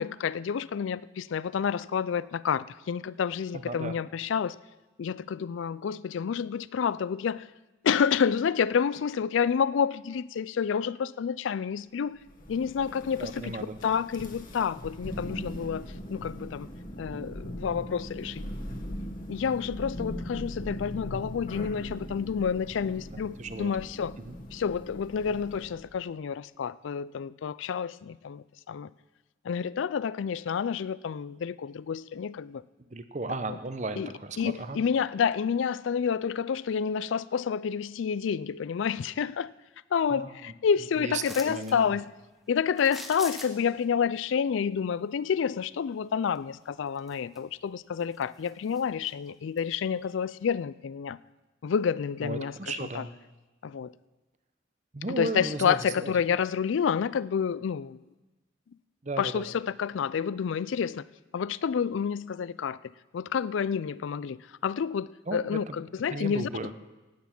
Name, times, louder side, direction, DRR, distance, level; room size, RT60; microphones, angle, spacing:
voice 1, 0.0-4.6 5.0-7.5 7.8-12.2 12.5-13.6 13.8-16.7 17.0-18.4 19.3-24.2 24.5-28.9 29.4-32.6 34.0-34.1 34.4-39.5 39.9-42.1 42.5-51.2 51.6-53.0 53.6-53.9 55.2-58.0 59.2-61.0 61.3-62.8 63.1-66.7, left 7 dB, 75° left, 0.4 m, -29 dB
voice 2, 3.5-4.0 13.2-13.8 23.1-23.7 24.3-24.4 32.9-34.8 40.1-40.3 41.0-41.8 52.2-53.1 54.9-56.1 59.0-59.4 65.3-65.8 66.1-66.7, right 2 dB, 35° right, 0.7 m, -35 dB
Thunder, 12.2-25.9, equal, 40° left, 1.5 m, -40 dB
sound 1, 41.2-41.8 42.8-43.8 46.3-46.4 46.9-47.6 48.0-49.1 49.6-49.7, equal, ahead, 0.9 m, -43 dB
15.5 x 9.4 x 6.0 m
head